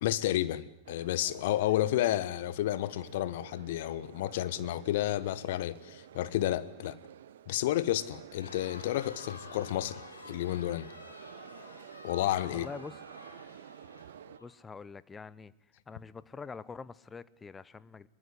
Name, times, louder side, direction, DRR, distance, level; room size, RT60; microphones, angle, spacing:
voice 1, 0.0-7.0 7.5-10.9 12.0-12.7, left 14 dB, 55° left, 1.2 m, -31 dB
sound 1, 0.8-14.4, right 10 dB, 60° right, 1.0 m, -51 dB
Crowd, 8.3-14.5, left 2 dB, 80° left, 4.2 m, -50 dB
voice 2, 12.5-13.0 14.4-15.5 15.9-18.1, left 5 dB, 15° left, 0.9 m, -45 dB
23.0 x 22.0 x 9.7 m
figure-of-eight pair, 90°, 0 cm